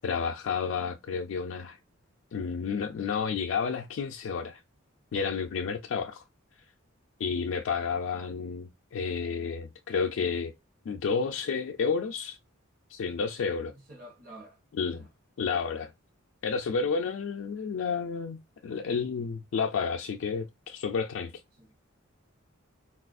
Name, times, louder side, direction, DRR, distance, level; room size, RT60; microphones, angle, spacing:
voice 1, 0.0-1.8 2.3-4.6 5.1-6.2 7.2-10.5 10.9-12.4 12.9-13.7 14.8-15.0 15.4-15.9 16.4-21.3, left 5 dB, 60° left, 0.3 m, -31 dB
voice 2, 13.7-14.6 14.9-15.1 16.8-16.9 21.1-21.3 21.6-21.8, right 1 dB, 45° right, 0.9 m, -50 dB
3.9 x 2.3 x 2.4 m
head